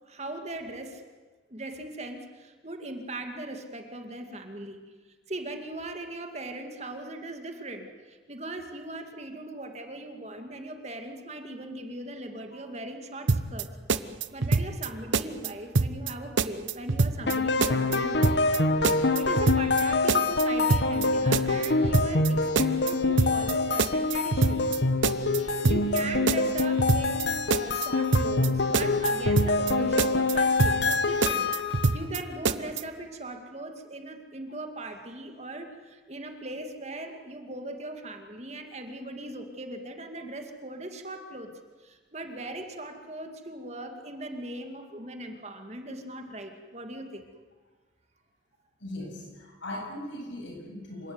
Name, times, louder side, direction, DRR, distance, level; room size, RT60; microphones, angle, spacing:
voice 1, 0.1-1.1 1.5-4.8 5.3-13.7 14.0-24.7 25.4-41.5 41.8-47.2, right 1 dB, 35° right, 5 dB, 2.4 m, -39 dB
sound 1, 13.3-13.6 13.9-14.9 15.1-15.5 15.8-16.1 16.4-17.4 17.6-18.0 18.2-18.6 18.8-19.8 20.1-20.4 20.7-21.1 21.3-22.3 22.6-22.9 23.2-23.5 23.8-24.8 25.0-25.4 25.7-26.0 26.3-27.2 27.5-27.9 28.1-28.5 28.7-29.7 30.0-30.3 30.6-31.0 31.2-32.2 32.5-32.8, right 3 dB, 85° right, 0.9 m, -25 dB
sound 2, 17.3-32.0, left 3 dB, 70° left, 1.4 m, -26 dB
voice 2, 48.8-51.1, left 1 dB, 85° left, 1 dB, 7.8 m, -39 dB
27.5 x 16.0 x 9.6 m, 1.3 s
head